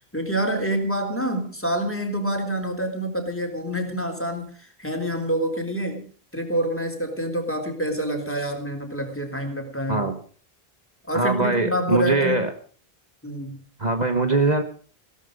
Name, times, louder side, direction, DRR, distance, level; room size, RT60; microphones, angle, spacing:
voice 1, 0.1-6.0 6.3-10.1 11.0-12.4 13.2-13.6, right 1 dB, 10° left, 4 dB, 3.6 m, -27 dB
voice 2, 11.1-12.5 13.8-14.6, right 3 dB, 45° right, 6 dB, 1.4 m, -22 dB
16.5 x 13.5 x 5.2 m, 0.43 s
omnidirectional pair, 1.0 m